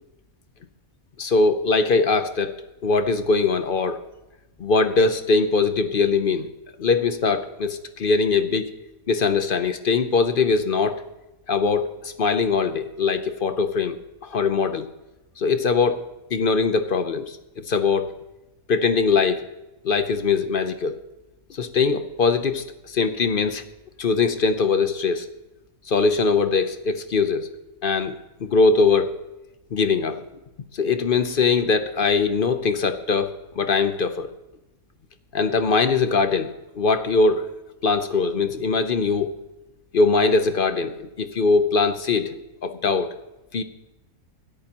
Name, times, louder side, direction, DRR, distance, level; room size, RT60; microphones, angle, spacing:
voice 1, 1.2-2.5 2.8-4.0 4.6-6.5 6.8-8.7 9.1-11.0 11.5-14.0 14.2-14.9 15.4-17.4 17.7-18.1 18.7-19.4 19.8-21.0 21.5-23.6 24.0-25.3 25.9-27.5 27.8-28.1 28.4-29.1 29.7-30.2 30.7-34.3 35.3-37.5 37.8-39.4 39.9-43.1 43.5-43.6, left 4 dB, 50° left, 10 dB, 0.7 m, -21 dB
26.5 x 8.8 x 2.9 m, 0.99 s
omnidirectional pair, 1.5 m